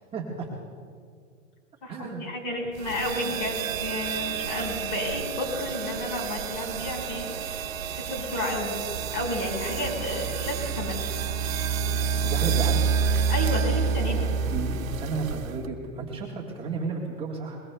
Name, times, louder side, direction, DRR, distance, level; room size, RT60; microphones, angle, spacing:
voice 1, 0.1-0.5 1.9-2.3 12.2-12.8 14.3-17.6, right 4 dB, 15° right, -4 dB, 1.4 m, -33 dB
voice 2, 1.8-7.6 8.0-8.7 9.1-11.0 13.3-14.3, left 1 dB, 40° left, 1 dB, 4.9 m, -31 dB
sound 1, 2.8-15.7, right 6 dB, 90° right, 1.2 m, -29 dB
23.5 x 21.0 x 2.2 m, 2.2 s
hypercardioid pair, 150°, 39 cm